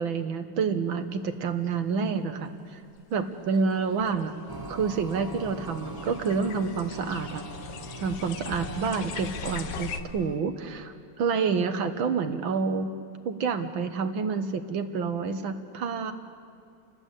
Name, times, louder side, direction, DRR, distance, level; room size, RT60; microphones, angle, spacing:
voice 1, 0.0-2.5 3.1-4.3 4.7-7.4 8.0-12.9 13.3-16.1, right 5 dB, 70° right, 8 dB, 2.1 m, -28 dB
sound 1, 3.0-3.1 3.7-10.0, left 6 dB, 60° left, 1.5 m, -40 dB
sound 2, 4.5-10.4, right 2 dB, 20° right, 0.7 m, -41 dB
29.5 x 20.0 x 8.3 m, 2.4 s
omnidirectional pair, 2.3 m